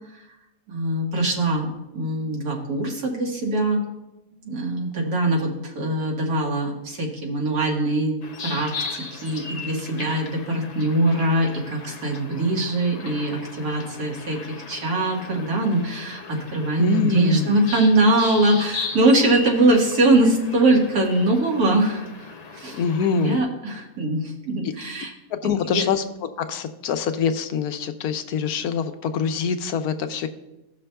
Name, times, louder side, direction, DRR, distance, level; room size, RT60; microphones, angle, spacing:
voice 1, 0.7-3.8 4.4-8.2 8.4-22.8 23.1-25.1 25.6-25.9, right 2 dB, 85° right, -1 dB, 2.0 m, -22 dB
sound 1, 8.2-23.4, left 4 dB, 50° left, 0.4 m, -37 dB
voice 2, 16.8-17.5 22.7-23.4 24.6-24.7 25.3-26.0 26.4-30.3, left 7 dB, 90° left, 8 dB, 1.2 m, -25 dB
17.5 x 6.0 x 2.2 m, 0.97 s
omnidirectional pair, 1.6 m